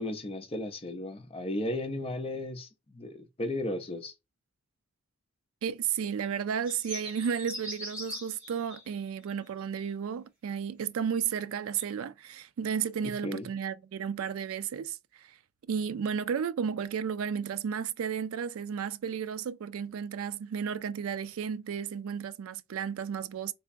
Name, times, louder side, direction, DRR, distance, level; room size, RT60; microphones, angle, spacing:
voice 1, 0.0-4.1 13.0-13.5, left 1 dB, 25° left, 0.6 m, -35 dB
voice 2, 5.6-15.3 15.7-23.5, right 7 dB, 75° right, 0.3 m, -33 dB
sound 1, 6.6-9.1 11.8-11.9, equal, 5° right, 1.9 m, -41 dB
3.4 x 2.9 x 2.5 m
head